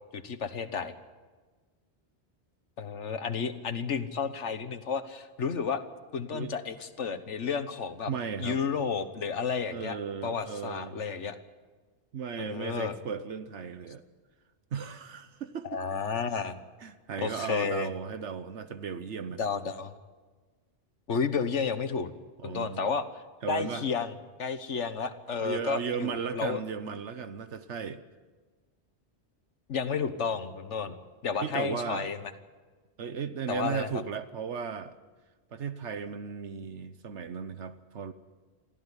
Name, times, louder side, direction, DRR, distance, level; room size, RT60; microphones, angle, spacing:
voice 1, 0.1-0.9 2.8-5.8 6.1-8.1 8.4-10.0 10.2-11.4 12.4-13.0 15.6-16.6 17.2-17.9 19.4-19.9 21.1-22.1 22.4-23.1 23.5-24.1 24.4-26.6 29.7-30.9 31.2-32.3 33.5-33.9, left 6 dB, 90° left, 10 dB, 1.6 m, -31 dB
voice 2, 8.1-8.6 9.7-11.0 12.1-14.0 14.7-15.8 16.8-19.4 22.4-22.9 23.4-23.8 25.4-28.0 31.4-32.1 33.0-35.0 35.5-38.1, right 6 dB, 80° right, 11 dB, 1.3 m, -36 dB
23.0 x 15.0 x 9.9 m, 1.4 s
omnidirectional pair, 1.2 m